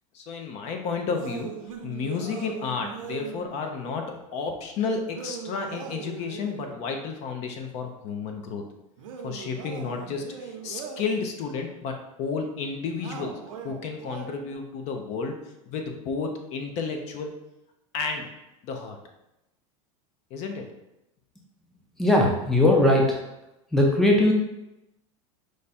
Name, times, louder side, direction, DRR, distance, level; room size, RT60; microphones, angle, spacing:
voice 1, 0.1-1.5 1.8-8.6 9.2-15.4 15.7-17.3 17.9-18.3 18.6-19.0 20.3-20.7, left 5 dB, 45° left, 4 dB, 0.6 m, -32 dB
sound 1, 1.1-3.5 5.1-6.8 9.0-11.2 13.0-14.5, right 7 dB, 90° right, 0.7 m, -39 dB
voice 2, 22.0-23.2 23.7-24.3, left 1 dB, ahead, -1 dB, 0.5 m, -19 dB
4.8 x 2.3 x 4.1 m, 0.91 s
supercardioid pair, 145°, 17 cm